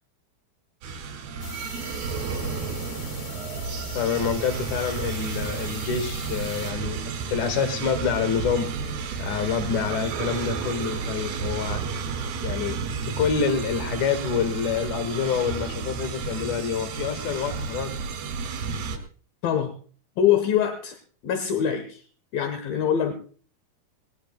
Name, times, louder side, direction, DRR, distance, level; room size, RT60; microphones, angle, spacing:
sound 1, 0.8-19.0, right 5 dB, 80° right, 4.1 m, -32 dB
sound 2, 1.4-6.7, left 3 dB, 40° left, 1.1 m, -41 dB
voice 1, 3.9-7.0 7.3-8.7 9.2-11.8 12.4-17.9, left 6 dB, 60° left, 8 dB, 3.0 m, -27 dB
voice 2, 19.4-19.7 20.2-21.0 21.2-22.0 22.3-23.1, left 9 dB, 75° left, 7 dB, 2.8 m, -23 dB
19.5 x 18.5 x 2.2 m, 0.42 s
omnidirectional pair, 4.5 m